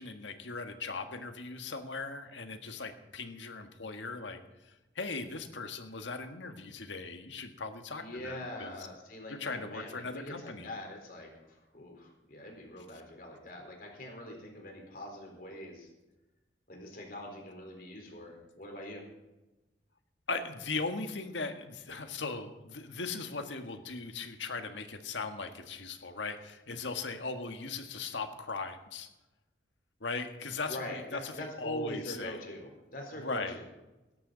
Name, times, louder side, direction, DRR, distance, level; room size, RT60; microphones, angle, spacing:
voice 1, 0.0-4.4 5.0-8.7 9.4-10.7 20.3-29.1 30.0-31.3 31.6-32.4 33.2-33.6, left 4 dB, 90° left, 6 dB, 1.6 m, -38 dB
voice 2, 8.0-15.9 16.7-19.1 30.7-33.7, equal, 50° left, 1 dB, 4.2 m, -43 dB
17.5 x 13.0 x 4.0 m, 1.0 s
head